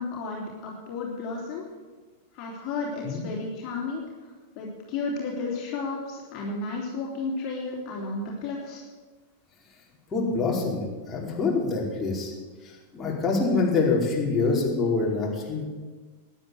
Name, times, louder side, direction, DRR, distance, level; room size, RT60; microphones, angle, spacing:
voice 1, 0.0-1.7 2.3-4.0 4.6-8.8, left 3 dB, 45° left, -3 dB, 3.7 m, -32 dB
voice 2, 10.1-12.3 12.6-15.6, left 3 dB, 20° left, -3 dB, 4.8 m, -25 dB
13.0 x 10.5 x 8.0 m, 1.4 s
hypercardioid pair, 105°, 0 cm